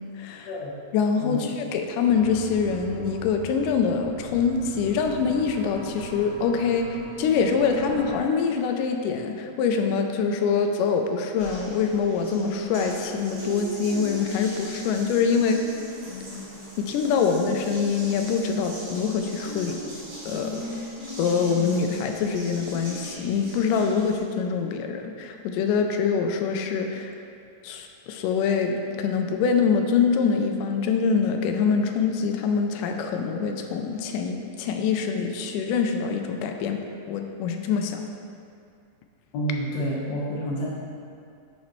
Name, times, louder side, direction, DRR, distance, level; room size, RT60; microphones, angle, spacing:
voice 1, 0.2-0.5 0.9-15.6 16.8-19.8 20.3-20.6 21.2-27.1 27.6-36.8 37.1-38.0, left 6 dB, 80° left, 4 dB, 2.0 m, -24 dB
sound 1, 2.1-8.2, right 3 dB, 75° right, 1.5 m, -40 dB
Water tap faucet, 11.4-24.2, equal, 40° right, 1.9 m, -37 dB
voice 2, 39.3-40.7, equal, 60° left, -6 dB, 2.0 m, -28 dB
10.5 x 4.2 x 3.0 m, 2.4 s
omnidirectional pair, 3.9 m